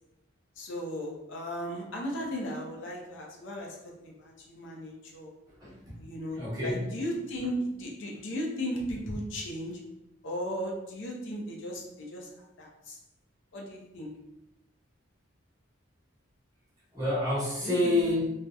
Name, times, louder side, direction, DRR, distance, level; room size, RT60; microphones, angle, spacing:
voice 1, 0.6-5.3 6.0-9.8 10.2-13.0 13.5-14.2 17.6-18.0, equal, 65° left, -1 dB, 0.5 m, -36 dB
voice 2, 5.6-6.0 6.4-6.9 16.9-18.3, left 1 dB, 20° right, -9 dB, 0.9 m, -28 dB
2.7 x 2.0 x 2.3 m, 0.89 s
head